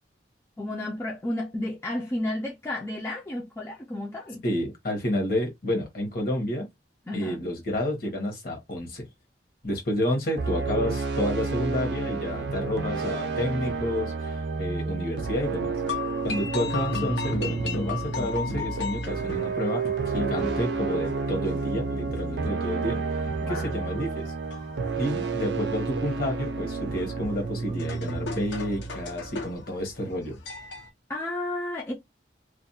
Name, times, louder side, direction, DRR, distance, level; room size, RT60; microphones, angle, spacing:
voice 1, 0.6-4.4 7.1-7.4 23.4-24.0 31.1-31.9, left 1 dB, 15° left, 0.4 m, -32 dB
voice 2, 4.4-6.7 7.1-9.0 9.6-15.7 16.2-19.8 20.1-24.3 24.9-30.4, left 1 dB, 50° left, 1.0 m, -30 dB
sound 1, 10.4-29.5, right 4 dB, 65° right, 0.4 m, -30 dB
sound 2, 15.8-30.9, left 4 dB, 75° left, 0.7 m, -37 dB
2.4 x 2.2 x 2.6 m
head